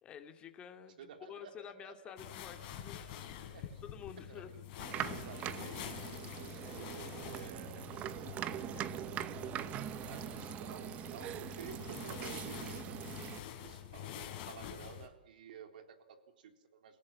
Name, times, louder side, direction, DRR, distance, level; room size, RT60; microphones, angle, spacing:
voice 1, 0.0-3.1 3.6-4.7, left 8 dB, 20° left, 6 dB, 2.4 m, -50 dB
voice 2, 1.0-2.1 3.5-3.8 4.2-4.6 5.1-5.9 6.4-8.9 10.0-13.1 13.5-17.0, right 8 dB, 65° right, 6 dB, 3.8 m, -53 dB
sound 1, 2.2-15.1, left 10 dB, 40° left, 4.4 m, -47 dB
sound 2, 4.8-13.4, right 12 dB, 25° right, 0.9 m, -42 dB
29.0 x 17.5 x 7.4 m, 0.96 s
hypercardioid pair, 140°, 5 cm